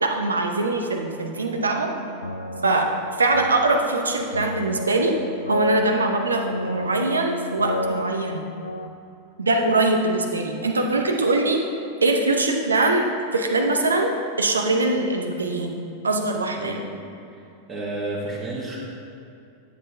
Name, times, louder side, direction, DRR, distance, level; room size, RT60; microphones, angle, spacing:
voice 1, 0.0-1.9 2.6-2.9 3.2-5.1 5.5-8.4 9.4-11.6 12.0-13.1 13.3-15.8 16.0-16.9, right 2 dB, 75° right, 4 dB, 0.8 m, -22 dB
sound 1, 1.5-8.9, left 1 dB, 85° left, 0.4 m, -31 dB
voice 2, 17.7-18.8, right 2 dB, 30° right, -7 dB, 1.5 m, -30 dB
10.0 x 7.7 x 2.7 m, 2.6 s
figure-of-eight pair, 90°, 0 cm